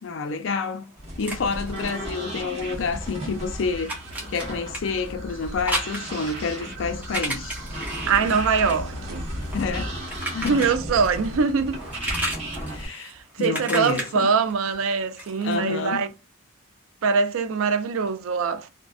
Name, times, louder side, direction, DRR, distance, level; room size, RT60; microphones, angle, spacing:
voice 1, 0.0-3.9 4.3-7.6 9.5-10.0 10.3-10.6 12.6-14.3 15.4-16.0, left 4 dB, 70° left, 0.4 m, -29 dB
sound 1, 0.8-2.9 3.2-11.3 11.6-15.6, right 1 dB, 10° right, 0.7 m, -34 dB
sound 2, 1.0-12.9, right 1 dB, 30° right, 1.0 m, -35 dB
sound 3, 3.5-9.9, equal, 70° right, 1.5 m, -41 dB
voice 2, 8.1-9.2 10.5-11.8 12.7-16.1 17.0-18.7, right 5 dB, 90° right, 0.4 m, -23 dB
2.5 x 2.2 x 2.3 m
head